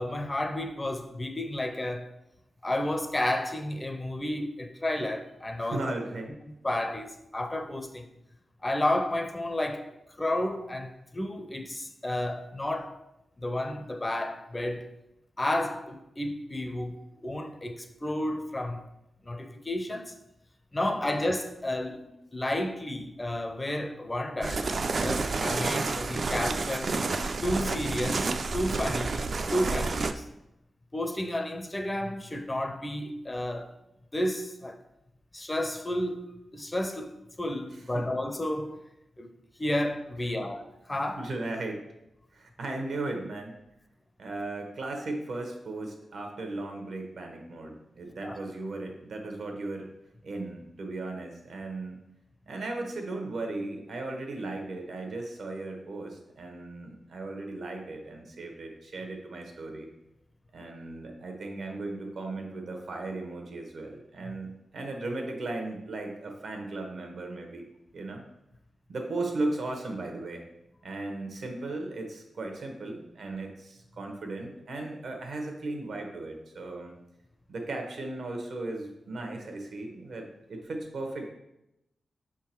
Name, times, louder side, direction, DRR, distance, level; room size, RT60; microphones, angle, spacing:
voice 1, 0.0-2.1 2.6-5.8 6.6-8.1 8.6-9.9 10.2-13.0 13.4-14.9 15.4-18.8 19.2-20.1 20.7-22.0 22.3-24.7 25.0-26.9 27.4-29.1 29.5-30.3 30.9-33.7 34.1-34.8 35.3-36.2 36.5-38.8 39.2-39.3 39.6-41.3 48.2-48.4, left 1 dB, 15° left, 0.4 m, -31 dB
voice 2, 5.6-6.3 20.8-21.0 22.0-22.2 37.9-38.1 41.2-41.8 42.3-43.5 44.2-49.9 50.2-52.0 52.5-59.9 60.5-68.2 68.9-70.4 70.8-76.9 77.5-81.3, right 2 dB, 75° right, 1.0 m, -36 dB
sound 1, 24.4-30.1, right 3 dB, 45° right, 0.3 m, -30 dB
6.0 x 3.6 x 4.4 m
wide cardioid pair, 150°, 0 cm